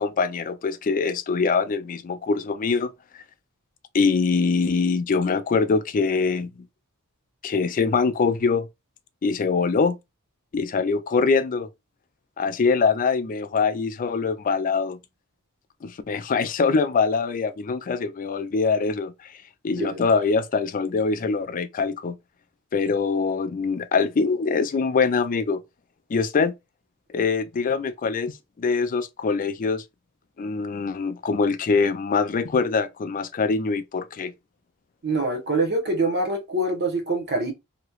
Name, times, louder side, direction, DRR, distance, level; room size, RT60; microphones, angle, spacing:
voice 1, 0.0-2.9 3.9-6.5 7.4-8.7 9.2-10.0 10.5-11.7 12.4-15.0 15.8-19.1 19.6-22.2 22.7-25.6 26.1-26.5 27.1-29.8 30.4-34.3, left 4 dB, 35° left, 0.4 m, -23 dB
voice 2, 19.8-20.1 35.0-37.5, right 2 dB, 50° right, 0.9 m, -25 dB
3.0 x 2.9 x 2.3 m
head